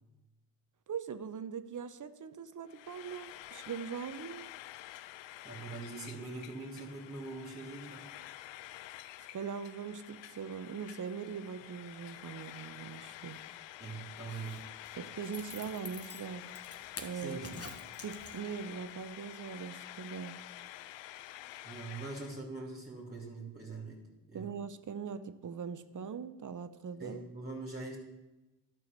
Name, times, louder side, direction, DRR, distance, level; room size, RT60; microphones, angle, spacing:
voice 1, 0.9-4.5 9.3-13.4 14.9-16.5 17.0-17.4 18.0-20.4 24.3-27.2, right 6 dB, 40° right, 12 dB, 0.8 m, -41 dB
Frying (food), 2.7-22.4, left 14 dB, 70° left, 0.6 m, -49 dB
voice 2, 5.4-8.1 13.8-14.6 17.1-17.7 21.6-24.0 24.3-24.5 27.0-28.0, right 3 dB, 20° right, -1 dB, 2.7 m, -43 dB
Zipper (clothing), 14.1-18.7 19.1-19.2, left 4 dB, 30° left, 1.4 m, -49 dB
11.5 x 4.7 x 6.7 m, 1.0 s
hypercardioid pair, 45°, 46 cm